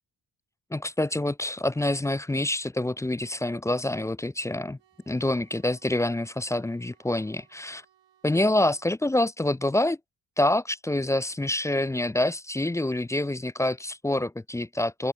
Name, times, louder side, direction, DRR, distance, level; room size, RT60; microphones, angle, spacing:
voice 1, 0.7-4.8 5.1-7.8 8.2-10.0 10.4-15.1, left 1 dB, 10° left, 0.3 m, -26 dB
sound 1, 4.8-9.0, right 10 dB, 80° right, 6.7 m, -65 dB
open air
cardioid pair, 130°, 43 cm